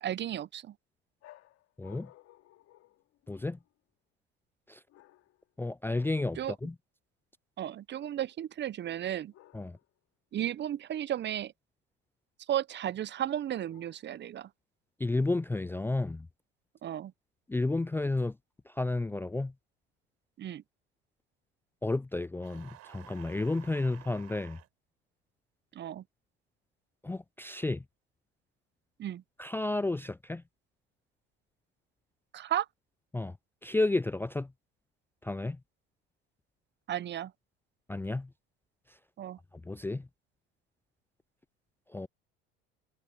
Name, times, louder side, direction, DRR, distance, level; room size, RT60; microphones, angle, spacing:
voice 1, 0.0-0.7 6.4-6.5 7.6-9.3 10.3-11.5 12.5-14.5 16.8-17.1 20.4-20.6 25.7-26.0 29.0-29.2 32.3-32.7 36.9-37.3 39.2-39.4, right 11 dB, 40° right, 0.8 m, -34 dB
sound 1, 1.2-3.7 4.9-5.5 5.9-6.4 9.3-10.0 13.5-14.3, left 15 dB, 55° left, 2.8 m, -59 dB
voice 2, 1.8-2.1 3.3-3.6 4.7-4.8 5.6-6.7 9.5-9.8 15.0-16.3 17.5-18.4 18.7-19.5 21.8-24.6 27.0-27.8 29.4-30.4 33.1-33.4 33.6-34.5 35.2-35.6 37.9-38.3 39.5-40.1 41.9-42.1, left 2 dB, 10° left, 0.5 m, -32 dB
sound 2, 22.4-24.7, right 16 dB, 60° right, 4.8 m, -53 dB
hypercardioid pair, 70°, 29 cm